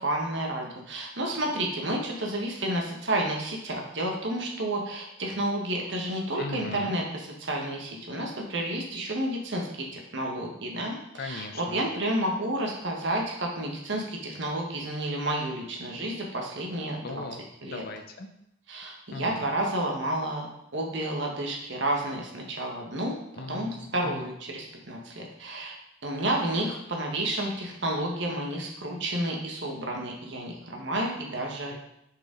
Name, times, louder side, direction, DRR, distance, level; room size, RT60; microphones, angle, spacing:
voice 1, 0.0-17.2 17.6-17.8 18.7-20.5 20.7-23.2 23.5-25.7 26.0-31.7, right 1 dB, 60° right, 0 dB, 1.3 m, -31 dB
voice 2, 6.4-7.0 11.2-11.8 17.0-18.3 19.1-19.4 23.4-24.3 31.7-31.8, left 3 dB, 50° left, 6 dB, 0.6 m, -39 dB
6.6 x 4.9 x 3.8 m, 0.80 s
head